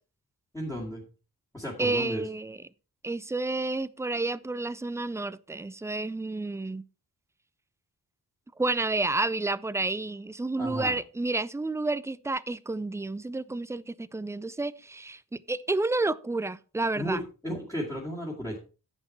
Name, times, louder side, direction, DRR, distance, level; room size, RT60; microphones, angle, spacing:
voice 1, 0.5-1.0 1.5-2.2 10.6-11.0 17.0-18.6, equal, 10° left, 2.4 m, -34 dB
voice 2, 1.8-2.6 3.0-6.8 8.6-15.2 15.5-17.2, right 2 dB, 10° right, 0.4 m, -30 dB
9.8 x 8.1 x 4.4 m
wide cardioid pair, 125°, 37 cm